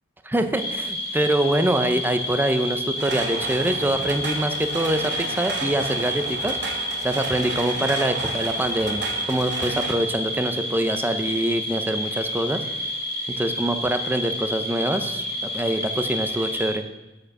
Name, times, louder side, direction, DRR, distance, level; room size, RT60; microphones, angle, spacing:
voice 1, 0.2-6.8 7.0-12.9 13.4-16.8, right 1 dB, 10° right, 8 dB, 0.6 m, -25 dB
sound 1, 0.6-16.7, equal, 50° left, 2.0 m, -29 dB
sound 2, 3.0-10.0, right 4 dB, 60° right, 1.0 m, -33 dB
8.0 x 6.4 x 5.9 m, 1.1 s
head